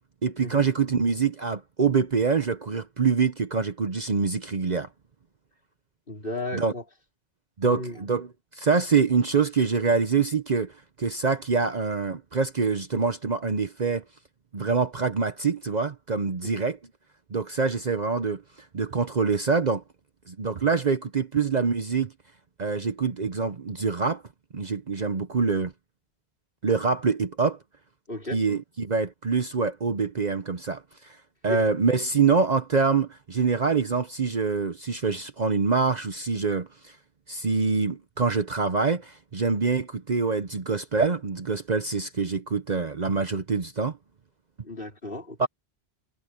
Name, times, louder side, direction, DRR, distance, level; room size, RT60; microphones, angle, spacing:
voice 1, 0.2-4.9 6.5-6.7 7.6-14.0 14.5-16.8 17.3-18.4 18.7-19.8 20.3-22.1 22.6-24.2 24.5-25.7 26.6-27.6 28.3-31.2 31.4-36.9 37.3-44.0 45.4-45.5, right 5 dB, 45° right, 1.0 m, -25 dB
voice 2, 6.1-6.8 7.6-8.0 16.6-16.7 28.1-28.4 31.5-31.6 44.6-45.5, left 1 dB, 60° left, 4.8 m, -34 dB
omnidirectional pair, 1.1 m